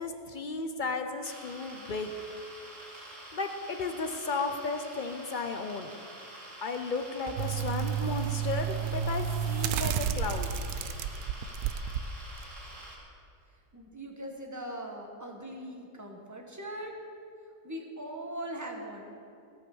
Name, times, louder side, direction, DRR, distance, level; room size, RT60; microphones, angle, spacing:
voice 1, 0.0-2.1 3.0-5.9 6.6-10.5, left 4 dB, 55° left, 6 dB, 0.5 m, -34 dB
sound 1, 1.2-13.0, right 1 dB, 55° right, 2.9 m, -47 dB
sound 2, 6.9-8.2 10.3-12.1 12.6-13.3, right 2 dB, 35° right, 0.8 m, -52 dB
sound 3, 7.4-12.0 12.4-12.5, right 8 dB, 90° right, 1.1 m, -31 dB
voice 2, 13.7-16.9 17.6-19.1, right 1 dB, 10° right, 1 dB, 1.2 m, -40 dB
17.0 x 5.8 x 7.0 m, 2.5 s
omnidirectional pair, 1.6 m